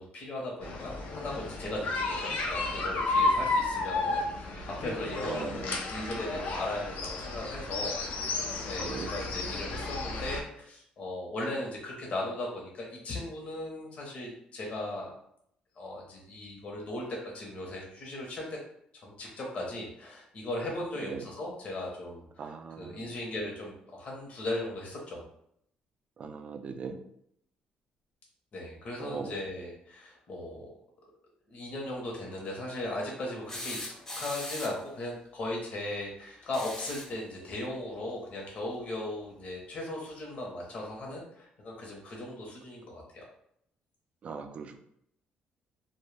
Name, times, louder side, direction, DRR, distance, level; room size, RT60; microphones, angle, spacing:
voice 1, 0.0-8.0 8.3-15.1 15.8-17.0 17.3-18.6 19.0-25.2 28.5-30.7 31.5-43.3, left 1 dB, 50° left, -2 dB, 0.8 m, -38 dB
sound 1, 0.6-10.4, left 3 dB, 75° left, 0.5 m, -32 dB
voice 2, 5.3-5.8 8.8-9.1 21.0-21.3 22.4-23.1 26.2-27.0 29.0-29.3 44.2-44.9, right 5 dB, 45° right, 6 dB, 0.3 m, -39 dB
sound 2, 33.5-34.9 36.4-37.2 38.9-39.0 40.4-40.5, left 1 dB, 20° left, 0.5 m, -40 dB
2.2 x 2.1 x 3.2 m, 0.71 s
cardioid pair, 100°, 3 cm